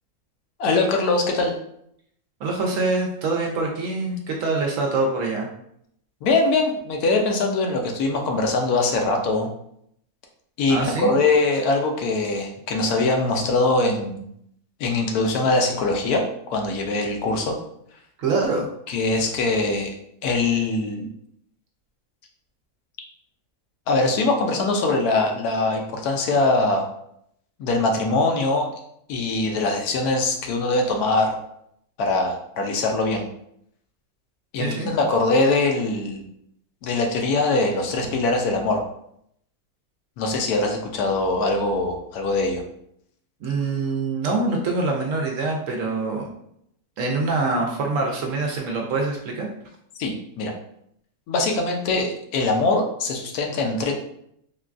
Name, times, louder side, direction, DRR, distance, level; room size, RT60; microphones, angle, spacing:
voice 1, 0.6-1.5 6.2-9.5 10.6-14.2 14.8-16.2 16.5-17.5 18.9-19.9 20.2-21.1 23.9-26.8 27.6-28.7 29.1-31.4 32.0-33.3 34.5-36.2 36.8-38.8 40.2-42.6 50.0-50.5 51.3-53.9, left 3 dB, 80° left, 3 dB, 1.1 m, -22 dB
voice 2, 2.4-5.5 10.7-11.2 18.2-18.7 34.6-34.9 43.4-46.3 47.0-49.5, right 3 dB, 70° right, 1 dB, 0.8 m, -25 dB
3.7 x 2.2 x 2.4 m, 0.72 s
omnidirectional pair, 1.6 m